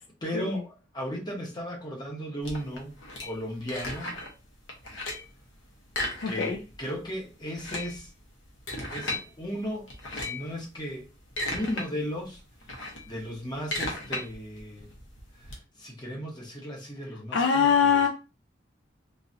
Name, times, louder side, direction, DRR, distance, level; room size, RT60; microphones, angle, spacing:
voice 1, 0.2-2.9 3.2-4.1 6.2-8.1 8.9-11.1 11.5-12.4 13.0-14.9 15.4-18.1, equal, 25° left, 1.1 m, -36 dB
sound 1, 2.4-4.4 4.7-5.4 5.9-6.8 7.0-7.1 7.5-9.2 9.9-10.5 11.0-11.9 12.2-15.5, left 2 dB, 85° left, 1.0 m, -35 dB
voice 2, 6.2-6.6 17.3-18.1, left 6 dB, 70° left, 0.4 m, -23 dB
3.8 x 2.7 x 2.7 m
head